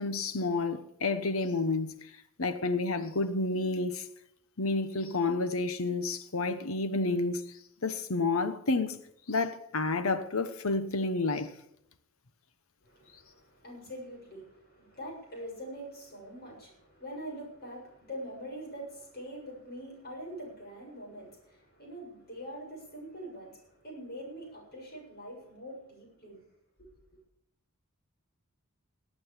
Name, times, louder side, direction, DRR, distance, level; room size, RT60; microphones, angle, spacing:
voice 1, 0.0-2.1 2.4-4.1 4.6-9.0 9.3-11.5, left 3 dB, 80° left, 1.1 m, -30 dB
voice 2, 12.8-26.4 26.8-26.9, equal, 45° left, 7.1 m, -44 dB
18.5 x 8.7 x 7.4 m
head